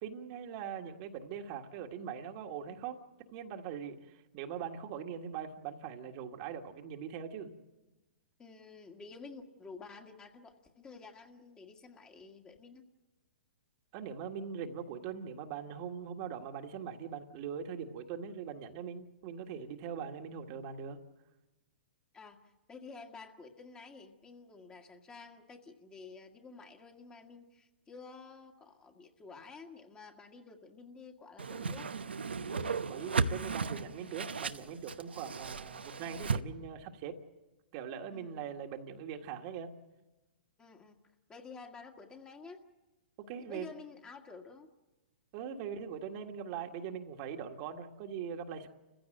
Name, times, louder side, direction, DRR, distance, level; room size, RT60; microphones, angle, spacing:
voice 1, 0.0-3.0 3.3-7.5 13.9-21.0 32.5-37.2 37.7-39.7 43.2-43.7 45.3-48.7, right 7 dB, 40° right, 4 dB, 1.7 m, -41 dB
voice 2, 8.4-12.8 22.1-22.4 22.7-31.9 38.1-38.4 40.6-41.0 41.3-42.6 43.5-44.7, left 4 dB, 15° left, 3 dB, 1.8 m, -51 dB
Whoosh swoosh swish, 31.4-36.4, right 4 dB, 85° right, 0.9 m, -35 dB
30.0 x 15.5 x 7.8 m, 1.1 s
hypercardioid pair, 125°, 6 cm